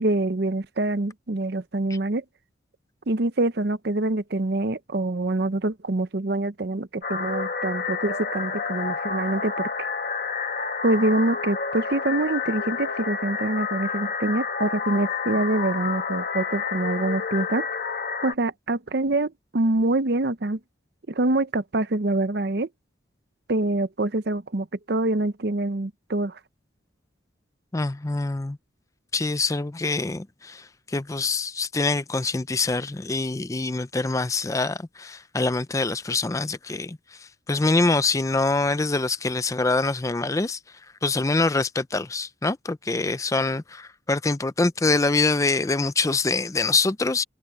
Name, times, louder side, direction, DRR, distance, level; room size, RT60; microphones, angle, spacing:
voice 1, 0.0-2.2 3.1-9.7 10.8-17.7 18.2-20.6 21.1-22.7 23.5-26.4, right 2 dB, 55° right, 0.7 m, -25 dB
sound 1, 7.0-18.3, left 5 dB, 45° left, 1.1 m, -29 dB
voice 2, 27.7-28.6 29.1-40.6 41.0-47.2, left 3 dB, 15° left, 0.4 m, -25 dB
head